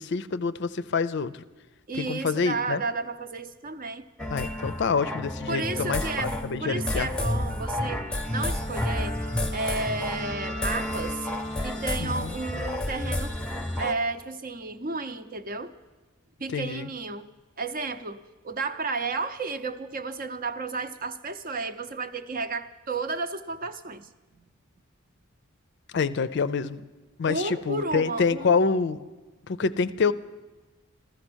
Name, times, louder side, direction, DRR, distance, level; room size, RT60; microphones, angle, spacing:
voice 1, 0.0-1.4 1.9-2.8 4.3-7.1 12.0-12.4 16.5-16.9 25.9-26.8 27.2-29.0 29.5-30.1, left 5 dB, 55° left, 14 dB, 0.5 m, -27 dB
voice 2, 1.9-4.1 5.5-11.3 11.6-13.4 13.8-15.7 16.4-17.3 17.6-24.1 27.3-28.6, right 3 dB, 40° right, 10 dB, 0.7 m, -32 dB
sound 1, 4.2-13.9, left 1 dB, 5° left, 0.8 m, -30 dB
14.0 x 14.0 x 6.2 m, 1.2 s
head